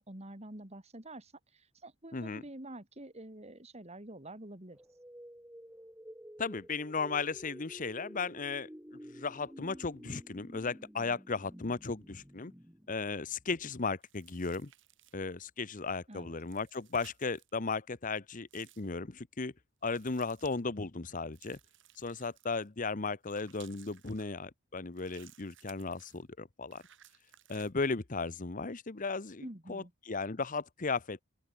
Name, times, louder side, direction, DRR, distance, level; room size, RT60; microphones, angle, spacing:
voice 1, 0.0-4.8 16.1-16.4 29.4-29.9, right 1 dB, 30° right, 2.9 m, -47 dB
voice 2, 2.1-2.4 6.4-8.7 9.1-12.5 12.9-14.7 15.1-19.5 19.8-21.6 22.0-26.8 27.5-31.2, left 4 dB, 40° left, 0.9 m, -36 dB
sound 1, 4.7-13.6, equal, 10° right, 5.1 m, -51 dB
sound 2, 14.0-15.3 16.4-17.5 18.5-18.9 19.8-20.6 21.3-22.7 23.2-24.3 24.9-26.2 26.7-27.7, right 12 dB, 60° right, 4.3 m, -60 dB
open air
head